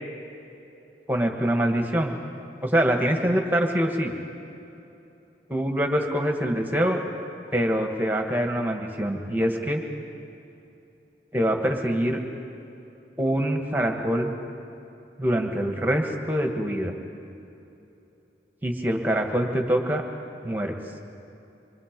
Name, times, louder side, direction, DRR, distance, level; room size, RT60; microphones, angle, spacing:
voice 1, 1.1-2.1 2.6-4.1 5.5-7.0 7.5-9.8 11.3-12.2 13.2-14.3 15.2-16.9 18.6-20.0 20.4-20.8, equal, 10° right, 3 dB, 1.6 m, -24 dB
26.0 x 24.0 x 5.3 m, 2.9 s
head